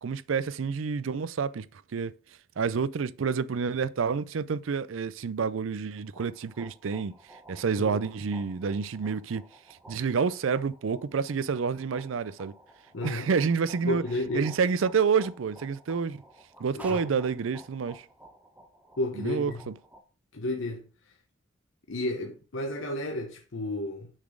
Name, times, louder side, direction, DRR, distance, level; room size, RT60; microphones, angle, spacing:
voice 1, 0.0-1.7 1.9-2.1 2.6-7.1 7.5-9.4 9.9-12.5 13.0-14.0 14.3-16.2 16.6-18.0 19.2-19.7, right 5 dB, 75° right, 0.4 m, -28 dB
sound 1, 6.0-20.0, equal, 5° right, 0.8 m, -52 dB
voice 2, 12.9-13.3 13.9-14.5 16.7-17.2 19.0-19.6 20.3-20.9 21.9-24.1, left 1 dB, 70° left, 0.9 m, -32 dB
6.2 x 4.1 x 6.4 m
head